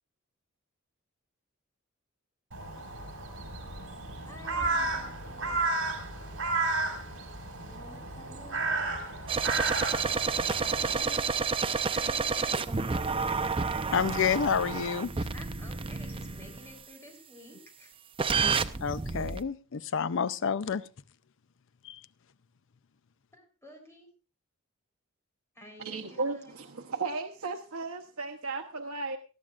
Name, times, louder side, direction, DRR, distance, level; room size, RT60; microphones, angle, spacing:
Crow, 2.5-11.0, right 3 dB, 65° right, 4.8 m, -33 dB
voice 1, 4.3-5.6 7.7-8.6 11.9-12.7 15.3-17.9 23.3-24.1 25.6-26.5, equal, 15° left, 4.0 m, -51 dB
sound 1, 9.3-16.7 18.2-19.4, right 5 dB, 25° right, 0.6 m, -30 dB
voice 2, 13.9-15.1 18.8-20.8 21.8-22.0, left 6 dB, 65° left, 0.5 m, -29 dB
voice 3, 25.8-29.2, right 3 dB, 90° right, 0.9 m, -35 dB
19.0 x 13.5 x 2.5 m
head